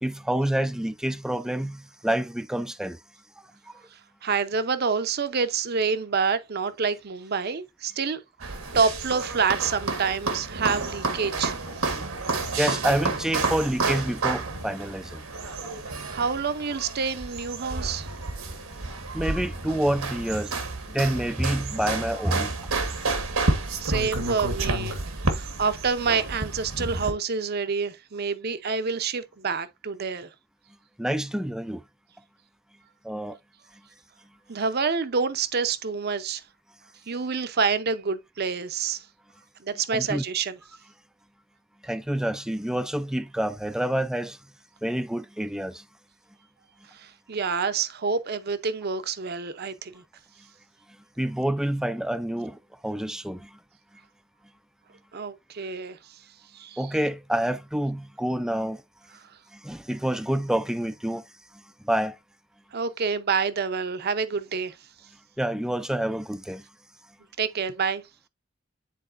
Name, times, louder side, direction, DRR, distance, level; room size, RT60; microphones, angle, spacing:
voice 1, 0.0-3.0 3.7-3.8 11.9-12.0 12.6-15.2 15.6-15.9 18.8-20.5 20.9-22.5 31.0-31.8 33.0-33.4 39.9-40.2 41.8-44.4 44.8-45.8 51.2-53.6 56.8-58.8 59.5-61.2 61.5-62.2 65.4-66.6, right 1 dB, 5° right, 0.3 m, -28 dB
voice 2, 4.2-12.0 16.1-18.1 23.8-25.0 25.3-30.3 34.5-36.4 37.1-39.1 39.6-40.6 46.9-50.0 55.1-56.0 56.5-56.8 62.7-64.7 67.4-68.0, right 5 dB, 50° right, 0.6 m, -27 dB
sound 1, 8.4-27.1, right 3 dB, 85° right, 1.4 m, -30 dB
10.0 x 4.1 x 2.5 m
head